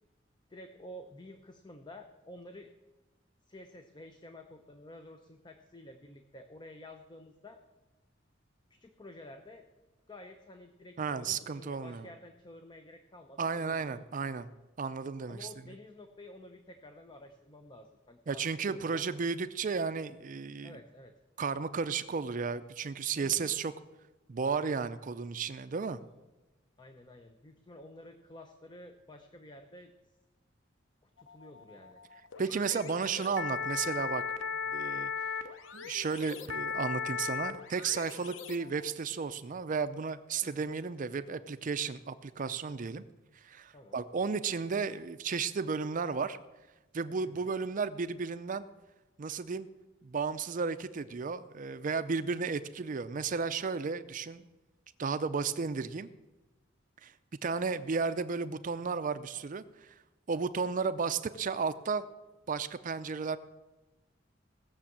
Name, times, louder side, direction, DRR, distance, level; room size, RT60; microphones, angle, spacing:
voice 1, 0.5-2.7 3.5-7.6 8.7-9.6 10.1-14.0 15.3-18.4 18.7-19.2 20.6-21.1 23.1-23.5 26.8-29.9 31.0-32.0 34.6-34.8 40.4-40.7 43.7-44.1 47.2-47.5, left 1 dB, 25° left, 6 dB, 0.7 m, -51 dB
voice 2, 11.0-12.1 13.4-14.5 14.8-15.5 18.3-20.8 21.4-23.7 24.3-26.0 32.4-34.2 34.7-35.1 35.7-43.0 43.3-46.4 46.9-48.7 49.2-49.7 50.0-54.5 55.0-56.1 57.0-57.1 57.4-59.9 60.3-62.0 62.5-63.4, right 5 dB, 45° right, 12 dB, 0.5 m, -33 dB
sound 1, 31.2-38.9, left 6 dB, 90° left, 0.8 m, -37 dB
17.5 x 7.0 x 7.3 m, 1.1 s
head